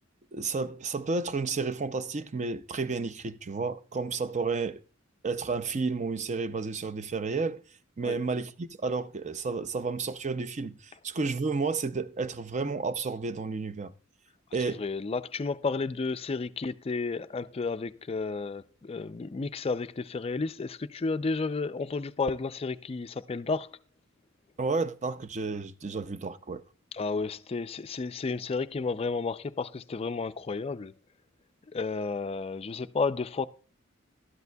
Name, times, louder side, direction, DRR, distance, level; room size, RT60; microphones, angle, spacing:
voice 1, 0.3-4.8 5.2-7.6 8.0-13.9 14.5-14.8 24.6-26.6, right 4 dB, 35° right, 0.5 m, -31 dB
voice 2, 14.7-23.7 26.9-30.9 31.7-33.5, left 4 dB, 30° left, 0.4 m, -32 dB
12.5 x 10.5 x 2.3 m
head